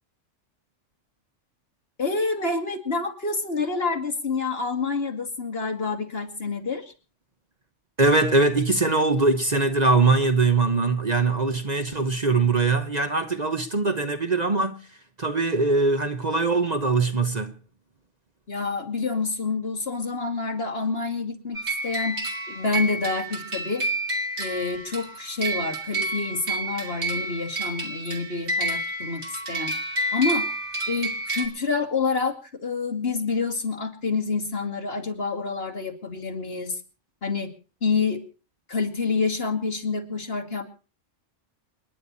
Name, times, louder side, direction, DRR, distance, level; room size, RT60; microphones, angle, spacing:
voice 1, 2.0-6.9 18.5-22.2 22.5-23.8 24.4-29.7 30.1-30.5 30.9-36.8 37.2-37.5 37.8-38.2 38.7-40.6, left 4 dB, 50° left, 2.7 m, -28 dB
voice 2, 8.0-14.8 15.2-17.5, right 3 dB, 35° right, 1.2 m, -22 dB
sound 1, 21.5-31.5, right 2 dB, 60° right, 2.9 m, -29 dB
28.5 x 10.5 x 4.1 m
omnidirectional pair, 1.3 m